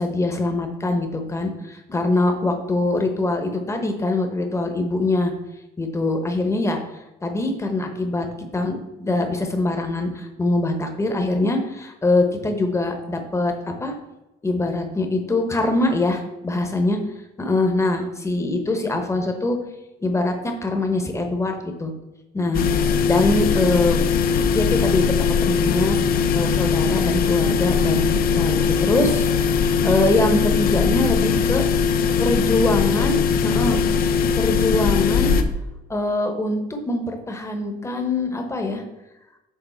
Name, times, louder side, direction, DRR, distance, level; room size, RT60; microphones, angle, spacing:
voice 1, 0.0-5.3 5.8-6.8 7.2-8.3 8.5-13.9 14.4-17.0 17.4-19.6 20.0-21.9 22.3-22.6 23.0-24.0 24.5-25.1 25.4-26.0 26.3-31.6 32.2-33.8 34.4-35.4 35.9-38.8, left 2 dB, 15° left, 4 dB, 1.0 m, -23 dB
sound 1, 22.5-35.4, left 6 dB, 60° left, 0.6 m, -20 dB
7.1 x 3.7 x 4.4 m, 0.97 s
cardioid pair, 110°, 17 cm